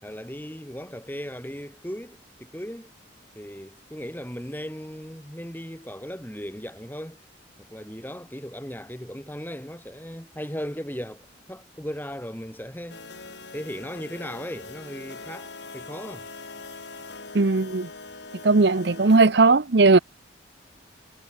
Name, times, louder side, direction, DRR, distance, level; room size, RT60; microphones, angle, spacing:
voice 1, 0.0-2.9 3.4-7.2 7.6-13.0 13.5-16.3, equal, 10° left, 5.8 m, -37 dB
sound 1, 12.9-19.2, left 3 dB, 60° left, 2.5 m, -42 dB
voice 2, 17.3-17.9 18.4-20.0, right 3 dB, 60° right, 0.8 m, -18 dB
head